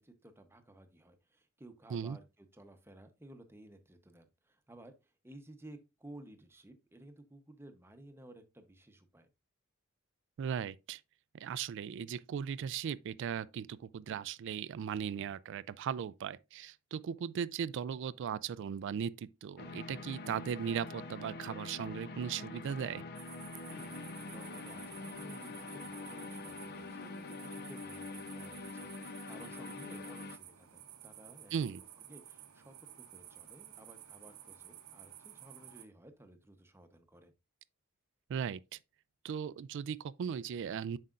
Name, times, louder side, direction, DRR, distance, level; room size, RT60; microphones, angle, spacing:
voice 1, 0.0-9.3 23.7-31.8 32.1-37.3, right 1 dB, 10° right, 0.8 m, -56 dB
voice 2, 10.4-11.0 11.3-23.0 31.5-31.8 38.3-38.8 39.2-41.0, right 7 dB, 60° right, 0.3 m, -38 dB
sound 1, 19.6-30.4, left 3 dB, 50° left, 0.6 m, -45 dB
sound 2, 23.2-35.8, right 10 dB, 75° right, 0.8 m, -53 dB
7.5 x 5.5 x 2.4 m
head